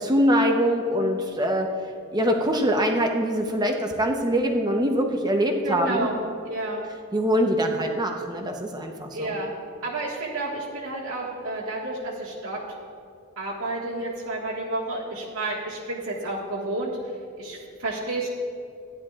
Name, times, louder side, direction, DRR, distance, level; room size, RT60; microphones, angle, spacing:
voice 1, 0.0-1.7 2.1-6.1 7.1-9.3, equal, 20° right, 3 dB, 0.9 m, -23 dB
voice 2, 5.6-6.2 6.5-6.9 9.1-9.5 9.8-12.6 13.4-18.3, right 2 dB, 80° right, -6 dB, 1.8 m, -30 dB
15.0 x 10.5 x 2.5 m, 2.4 s
head